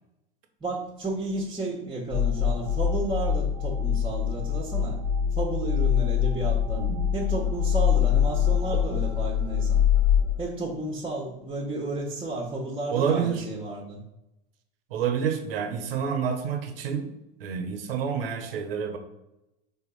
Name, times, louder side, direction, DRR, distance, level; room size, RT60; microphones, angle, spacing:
voice 1, 0.6-5.0 5.3-6.8 7.1-9.8 10.4-14.0, right 2 dB, 15° right, -3 dB, 1.4 m, -32 dB
sound 1, 2.1-10.3, left 8 dB, 65° left, 1.9 m, -24 dB
voice 2, 6.7-7.1 12.9-13.5 14.9-17.1 17.4-19.0, right 7 dB, 75° right, 6 dB, 1.1 m, -28 dB
4.5 x 3.9 x 5.5 m, 0.91 s
hypercardioid pair, 90°, 30 cm